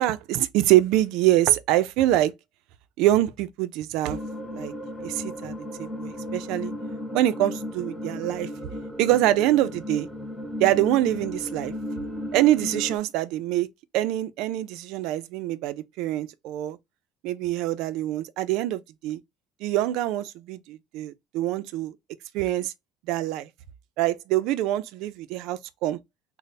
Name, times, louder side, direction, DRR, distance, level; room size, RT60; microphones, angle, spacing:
voice 1, 0.0-2.3 3.0-4.2 4.5-4.7 5.0-6.7 7.1-8.5 9.0-10.1 10.6-11.7 12.3-13.7 13.9-16.8 17.2-19.2 19.6-21.9 22.3-22.7 23.1-23.5 24.0-26.0, right 14 dB, 65° right, 0.4 m, -24 dB
sound 1, 4.1-13.0, left 1 dB, ahead, 0.5 m, -35 dB
3.3 x 2.0 x 3.9 m
cardioid pair, 170°, 0 cm